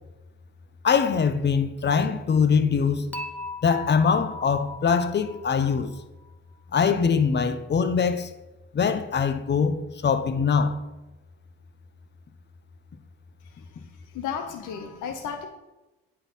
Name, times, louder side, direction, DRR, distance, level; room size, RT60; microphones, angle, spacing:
voice 1, 0.8-3.1 3.6-5.9 6.7-8.3 8.7-10.8, left 6 dB, 35° left, 0.7 m, -23 dB
Dishes pots and pans / Chink clink, 3.1-6.3, left 2 dB, 5° left, 0.7 m, -39 dB
voice 2, 14.1-15.5, left 7 dB, 85° left, 0.9 m, -33 dB
8.7 x 4.5 x 5.4 m
cardioid pair, 90°, 30 cm